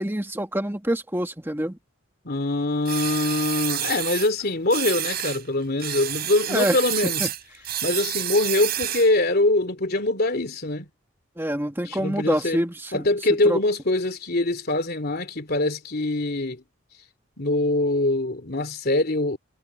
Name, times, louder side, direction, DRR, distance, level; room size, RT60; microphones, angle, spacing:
voice 1, 0.0-1.8 6.5-6.8 7.2-7.3 11.4-13.0 13.5-13.6, right 1 dB, 10° right, 1.8 m, -26 dB
voice 2, 2.2-7.3 7.8-10.9 11.8-12.6 12.9-16.6 17.4-19.4, left 2 dB, 50° left, 3.0 m, -23 dB
sound 1, 2.8-4.3 4.7-5.4 5.8-9.2, right 12 dB, 50° right, 6.4 m, -29 dB
head